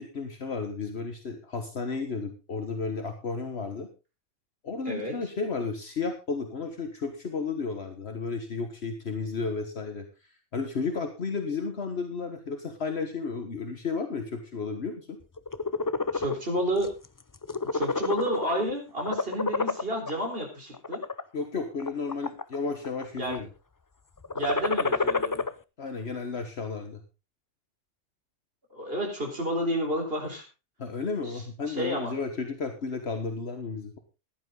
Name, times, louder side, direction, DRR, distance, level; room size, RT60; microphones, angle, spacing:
voice 1, 0.0-3.9 4.6-15.2 21.3-23.5 25.8-27.0 30.8-34.0, left 4 dB, 60° left, 6 dB, 1.6 m, -33 dB
voice 2, 4.9-5.2 16.1-16.9 17.7-21.0 23.2-23.5 24.3-25.4 28.7-30.4 31.7-32.1, right 1 dB, 55° right, 2 dB, 4.4 m, -30 dB
sound 1, 15.4-16.4 16.8-17.1 17.4-18.6 19.0-20.1 20.7-21.2 21.8-22.6 22.8-23.4 24.2-25.5, left 4 dB, 25° left, 0.4 m, -28 dB
15.0 x 11.0 x 3.8 m, 0.29 s
omnidirectional pair, 1.2 m